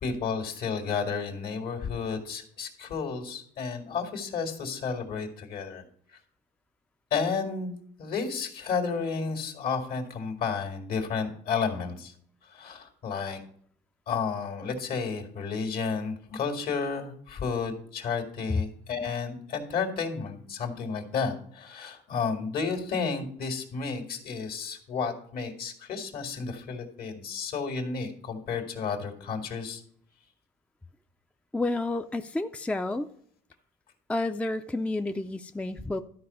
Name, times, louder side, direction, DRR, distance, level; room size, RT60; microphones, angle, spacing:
voice 1, 0.0-5.8 6.1-6.2 7.1-7.7 8.0-12.1 12.4-13.4 14.1-29.8, left 5 dB, 65° left, 4 dB, 2.1 m, -32 dB
voice 2, 31.5-33.1 34.1-36.0, left 2 dB, 5° left, 8 dB, 0.4 m, -30 dB
12.5 x 4.8 x 5.5 m, 0.62 s
cardioid pair, 105°, 17 cm